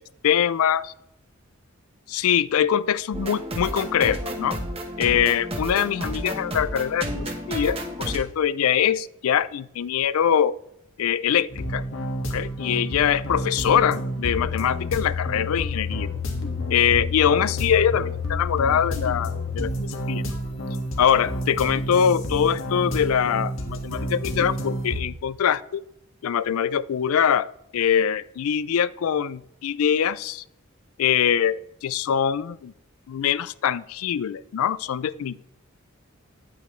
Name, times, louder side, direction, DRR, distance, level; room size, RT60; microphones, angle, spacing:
voice 1, 0.2-0.9 2.1-4.6 5.0-10.6 11.0-11.8 12.3-16.1 16.7-20.2 21.0-25.8 26.2-27.5 27.7-30.4 31.0-32.7 33.1-35.4, left 8 dB, 85° left, 17 dB, 0.4 m, -23 dB
sound 1, 3.1-8.2, right 1 dB, 25° right, 1.1 m, -31 dB
sound 2, 11.5-25.0, left 1 dB, 65° left, 1.6 m, -29 dB
10.5 x 8.5 x 3.1 m, 0.79 s
head